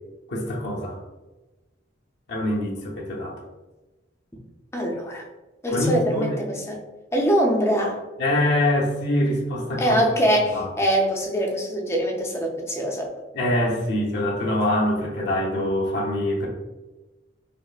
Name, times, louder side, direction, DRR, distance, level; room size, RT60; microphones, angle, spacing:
voice 1, 0.3-1.0 2.3-3.4 5.7-6.4 8.2-10.0 10.5-10.7 13.3-16.5, left 1 dB, 65° left, -2 dB, 0.7 m, -24 dB
voice 2, 4.7-5.2 5.6-6.8 7.1-8.0 9.8-13.1, equal, 15° left, 0 dB, 0.6 m, -23 dB
5.2 x 2.1 x 2.4 m, 1.1 s
head